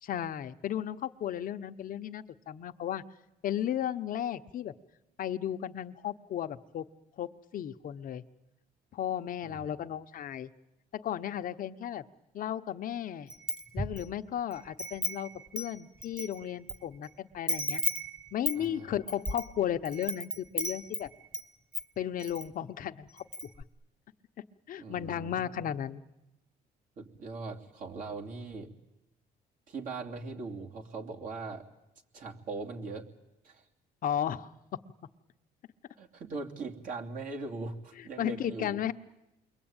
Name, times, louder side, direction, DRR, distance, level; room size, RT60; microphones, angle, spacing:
voice 1, 0.0-3.0 3.4-4.7 5.2-6.9 7.2-8.2 8.9-10.5 10.9-12.0 12.3-13.3 13.7-17.8 18.3-21.1 22.0-23.2 24.7-26.0 34.0-34.5 38.0-38.9, left 10 dB, 55° left, 10 dB, 0.9 m, -34 dB
Wind chime, 13.3-14.1 14.5-16.8 17.0-17.1 17.5-21.5 21.7-22.5 22.8-22.9 23.2-23.6, equal, 5° right, 1.2 m, -35 dB
voice 2, 18.5-18.9 24.8-25.6 27.0-28.7 29.7-31.7 32.1-33.1 33.4-33.6 36.0-38.8, right 3 dB, 55° right, 1 dB, 3.0 m, -40 dB
28.5 x 22.5 x 8.9 m, 0.96 s
cardioid pair, 110°, 17 cm